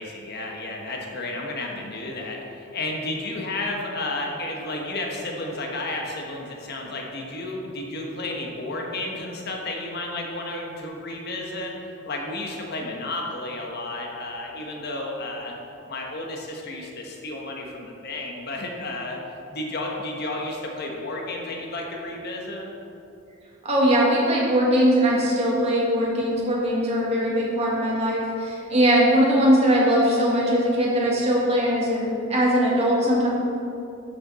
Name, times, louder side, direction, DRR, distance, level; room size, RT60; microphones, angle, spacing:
voice 1, 0.0-11.7 12.0-15.5 15.9-19.2 19.5-22.7, left 2 dB, 55° left, 0 dB, 1.2 m, -32 dB
voice 2, 23.6-33.3, equal, 30° right, -5 dB, 2.2 m, -20 dB
11.5 x 6.8 x 4.2 m, 2.8 s
head